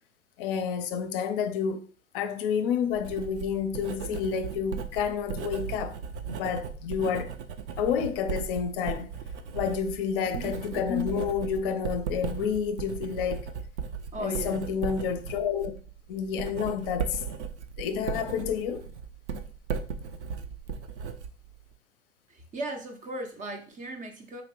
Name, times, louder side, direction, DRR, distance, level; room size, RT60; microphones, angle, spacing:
voice 1, 0.4-1.9 2.1-6.0 6.3-7.3 7.8-9.1 9.5-13.5 14.2-15.7 16.1-17.2 17.8-18.8, left 7 dB, 50° left, 0.6 m, -29 dB
Writing, 2.9-21.7, right 6 dB, 70° right, 0.6 m, -37 dB
voice 2, 10.2-10.6 14.1-14.6 22.3-24.4, right 2 dB, 20° right, 0.5 m, -37 dB
4.0 x 2.8 x 3.0 m
figure-of-eight pair, 90°, 36 cm